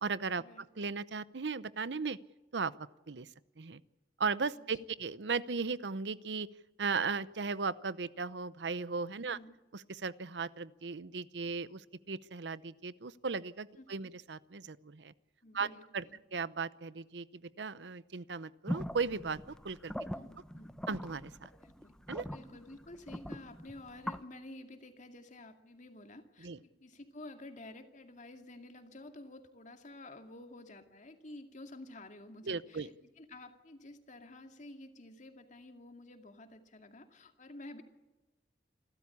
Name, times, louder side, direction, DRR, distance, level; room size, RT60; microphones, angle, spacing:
voice 1, 0.0-2.2 2.5-2.7 3.1-3.3 3.6-3.8 4.2-6.5 6.8-9.4 9.9-15.1 15.5-15.7 15.9-16.0 16.3-19.9 20.9-21.5 22.1-22.2 26.4-26.6 32.5-32.9, right 4 dB, 85° right, 17 dB, 0.8 m, -36 dB
voice 2, 9.2-9.6 13.8-13.9 15.4-16.2 20.1-20.8 21.6-21.9 22.3-37.8, left 2 dB, 45° left, 6 dB, 2.3 m, -51 dB
sound 1, 18.7-24.2, equal, 5° left, 0.8 m, -42 dB
28.0 x 13.0 x 8.6 m, 1.1 s
head